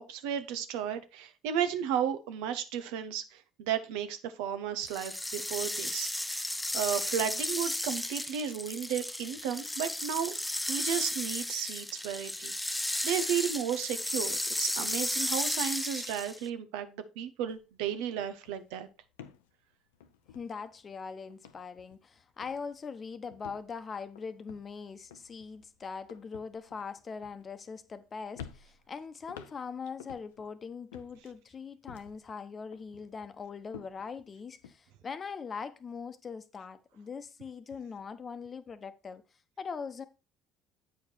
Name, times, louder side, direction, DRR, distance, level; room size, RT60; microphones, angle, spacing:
voice 1, 0.0-6.3 6.7-10.3 10.7-18.9, right 9 dB, 75° right, 0.8 m, -34 dB
sound 1, 4.8-16.5, left 1 dB, 5° left, 0.5 m, -34 dB
sound 2, 17.5-17.7 18.0-21.0 21.3-22.1 22.4-22.8 23.3-28.0 28.3-30.5 30.9-32.3 32.7-34.8, left 8 dB, 85° left, 0.6 m, -52 dB
voice 2, 20.3-39.2 39.6-40.0, left 5 dB, 40° left, 0.9 m, -41 dB
8.2 x 4.9 x 4.4 m
hypercardioid pair, 60°, 0 cm